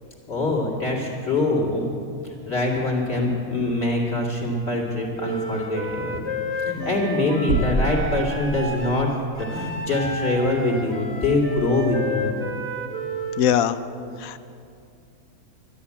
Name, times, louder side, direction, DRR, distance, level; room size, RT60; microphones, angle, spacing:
voice 1, 0.3-1.9 2.2-6.2 6.6-9.1 9.4-12.4, left 2 dB, 40° left, -2 dB, 2.6 m, -24 dB
Wind instrument woodwind instrument, 5.2-13.5, equal, 10° right, 0.8 m, -31 dB
sound 1, 7.5-9.1, right 2 dB, 75° right, 2.2 m, -26 dB
voice 2, 13.4-13.8 14.2-14.4, left 9 dB, 70° left, 13 dB, 1.0 m, -21 dB
12.5 x 10.5 x 8.4 m, 2.5 s
omnidirectional pair, 1.6 m